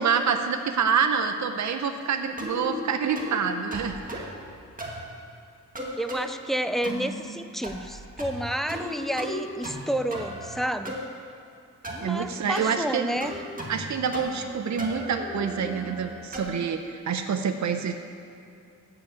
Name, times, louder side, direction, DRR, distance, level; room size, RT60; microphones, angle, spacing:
voice 1, 0.0-4.3 12.0-13.2 13.7-17.9, right 6 dB, 65° right, 7 dB, 0.7 m, -27 dB
sound 1, 2.4-2.7 3.2-3.4 3.7-4.4 4.8-5.1 5.8-6.3 6.8-7.2 7.6-7.9 8.2-8.9 9.2-9.8 10.1-11.0 11.8-12.1 12.5-12.7 13.2-13.9 14.1-14.5 14.8-16.6, equal, 25° right, 1.8 m, -36 dB
voice 2, 6.0-11.0 12.0-13.4, right 1 dB, ahead, 9 dB, 0.4 m, -30 dB
12.5 x 4.9 x 8.6 m, 2.5 s
wide cardioid pair, 105°, 31 cm